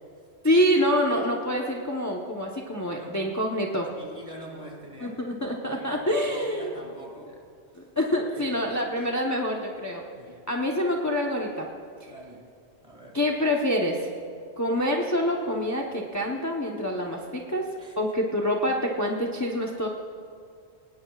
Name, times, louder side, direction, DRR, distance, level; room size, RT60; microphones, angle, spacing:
voice 1, 0.4-3.9 5.0-6.7 8.0-10.0 10.5-11.7 13.1-14.0 14.6-17.6 18.0-19.9, equal, 15° left, -1 dB, 0.9 m, -26 dB
voice 2, 2.9-3.2 3.9-5.2 5.6-7.4 7.7-7.8 8.1-8.8 10.2-10.4 12.1-12.5 12.8-13.2 17.8-18.0, equal, 35° right, -1 dB, 2.5 m, -45 dB
21.5 x 18.5 x 2.4 m, 2.3 s
omnidirectional pair, 1.1 m